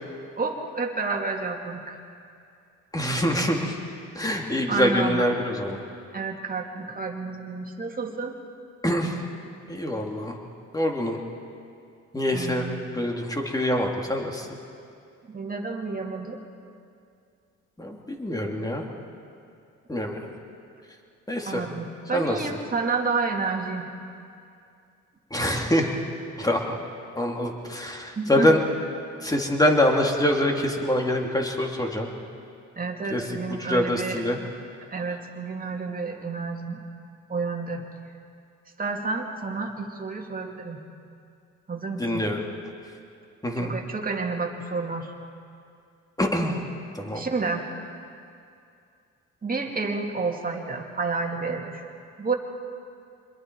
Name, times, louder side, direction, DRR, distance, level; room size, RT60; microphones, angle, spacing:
voice 1, 0.4-2.0 4.7-5.3 6.1-8.4 12.3-12.8 15.3-16.4 21.4-23.9 28.2-28.5 32.8-34.3 34.9-36.8 37.3-37.9 38.8-40.8 41.7-42.3 43.6-45.1 47.1-47.7 49.4-51.9 52.2-52.4, right 4 dB, 30° right, 1 dB, 2.5 m, -30 dB
voice 2, 2.9-3.8 4.1-5.8 8.8-9.2 9.7-10.4 10.7-11.2 12.1-12.6 12.9-14.5 17.8-18.8 19.9-20.3 21.3-21.6 22.1-22.4 25.3-25.9 26.4-26.7 27.2-28.6 29.2-32.1 33.1-33.2 33.6-34.4 42.0-42.4 43.4-43.7 46.2-46.6 47.0-47.3, left 1 dB, 10° left, 1 dB, 2.7 m, -25 dB
27.0 x 21.5 x 4.7 m, 2.4 s
cardioid pair, 90°, 30 cm